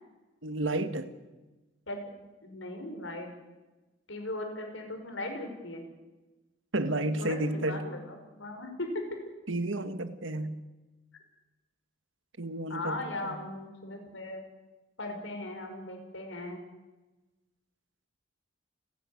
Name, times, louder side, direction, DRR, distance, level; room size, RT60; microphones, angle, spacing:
voice 1, 0.4-1.1 6.7-7.9 9.5-10.6 12.4-13.4, right 2 dB, 85° right, 11 dB, 1.7 m, -31 dB
voice 2, 2.4-3.3 4.1-5.8 7.2-9.0 12.7-14.4 15.0-16.6, left 2 dB, 80° left, 4 dB, 5.5 m, -38 dB
29.5 x 11.0 x 9.8 m, 1.1 s
head